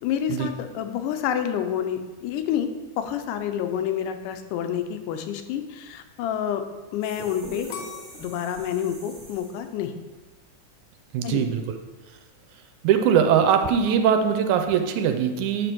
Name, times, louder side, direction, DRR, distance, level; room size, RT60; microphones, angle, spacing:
voice 1, 0.0-2.7 3.0-6.6 6.9-7.7 8.2-9.9 11.2-11.4, left 9 dB, 90° left, 7 dB, 2.2 m, -28 dB
sound 1, 7.0-9.8, right 2 dB, 30° right, 1.4 m, -43 dB
sound 2, 7.7-10.6 11.1-11.6, left 6 dB, 75° left, 1.7 m, -42 dB
voice 2, 11.1-11.8 12.8-15.7, right 8 dB, 80° right, 7 dB, 1.9 m, -21 dB
9.3 x 3.3 x 6.0 m, 1.3 s
omnidirectional pair, 3.6 m